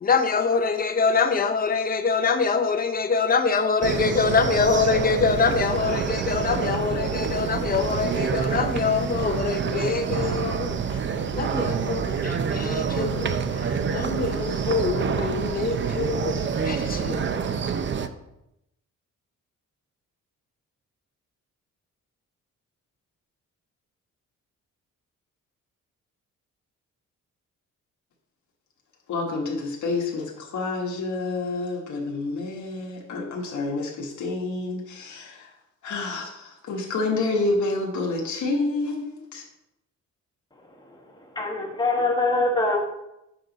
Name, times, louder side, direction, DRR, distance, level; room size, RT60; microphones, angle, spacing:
voice 1, 0.0-11.0 11.3-17.3, left 5 dB, 30° left, 0.7 m, -25 dB
sound 1, 3.8-18.1, right 6 dB, 40° right, 0.5 m, -27 dB
voice 2, 29.1-35.5 35.8-39.4, left 3 dB, 70° left, 1.4 m, -28 dB
voice 3, 41.3-42.8, left 2 dB, 15° left, 1.4 m, -23 dB
7.7 x 6.1 x 4.0 m
cardioid pair, 140°, 30 cm